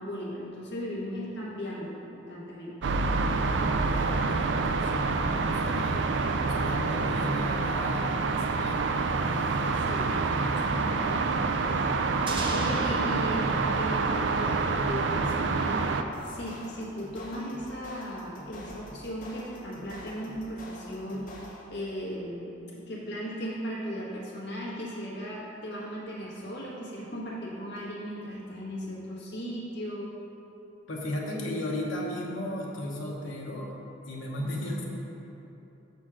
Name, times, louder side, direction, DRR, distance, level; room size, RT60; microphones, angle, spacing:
voice 1, 0.0-2.8 5.3-5.8 9.7-10.1 12.0-30.1 34.4-34.8, equal, 60° left, -5 dB, 1.5 m, -37 dB
sound 1, 2.8-16.0, right 4 dB, 65° right, 0.4 m, -27 dB
voice 2, 3.4-6.0 6.5-9.0 9.4-11.5 30.9-33.8 34.0-34.8, left 1 dB, 85° left, -3 dB, 1.1 m, -36 dB
sound 2, 12.3-15.0, right 2 dB, 25° right, 0.7 m, -39 dB
sound 3, 16.1-21.8, left 1 dB, 45° left, 0.9 m, -46 dB
6.1 x 4.2 x 6.1 m, 3.0 s
head